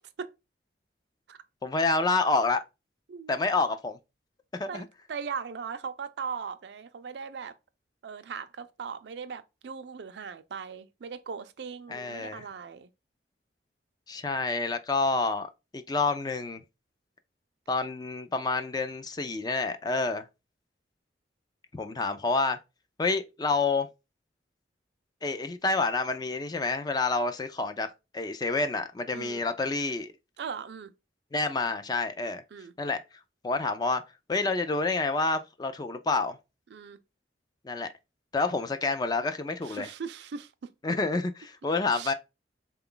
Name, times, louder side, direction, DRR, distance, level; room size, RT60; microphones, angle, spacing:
voice 1, 1.6-2.6 3.3-4.0 4.5-4.9 11.9-12.5 14.1-16.6 17.7-20.3 21.7-22.6 23.0-23.9 25.2-27.9 28.1-30.1 31.3-32.4 32.8-33.0 33.4-34.0 34.3-36.4 37.6-37.9 38.3-39.9 40.8-42.1, left 3 dB, 20° left, 0.3 m, -28 dB
voice 2, 4.7-7.5 8.0-12.9 29.1-29.4 30.4-30.9 32.5-32.7 36.7-37.0 39.6-41.0 41.9-42.1, right 6 dB, 70° right, 0.4 m, -39 dB
3.8 x 2.3 x 3.7 m
head